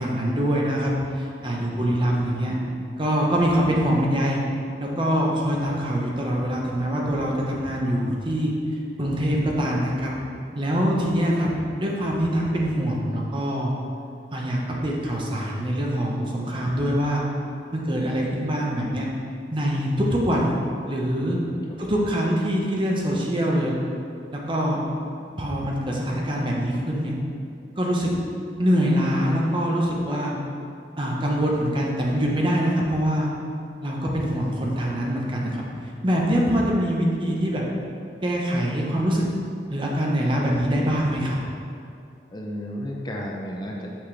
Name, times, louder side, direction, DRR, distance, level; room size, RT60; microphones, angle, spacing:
voice 1, 0.0-2.6 3.0-4.4 4.8-8.5 9.0-10.1 10.5-13.7 14.3-17.2 17.7-19.1 19.5-20.5 20.9-21.4 21.8-23.7 24.3-24.8 25.4-27.2 27.8-28.1 28.6-30.3 31.0-33.3 33.8-35.6 36.0-37.6 38.2-39.3 39.7-41.4, equal, 30° right, -2 dB, 0.9 m, -24 dB
voice 2, 21.2-21.8 22.1-22.2 42.3-43.9, equal, 25° left, -2 dB, 0.6 m, -34 dB
6.5 x 6.0 x 3.3 m, 2.5 s
head